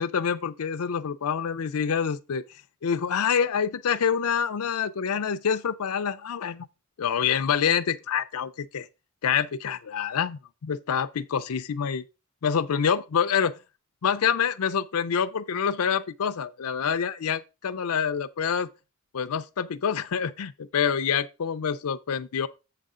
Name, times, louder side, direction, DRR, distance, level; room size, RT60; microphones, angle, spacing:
voice 1, 0.0-2.4 2.8-6.7 7.0-8.9 9.2-12.0 12.4-13.5 14.0-18.7 19.1-22.5, left 7 dB, 85° left, 0.5 m, -26 dB
7.9 x 6.6 x 3.7 m
head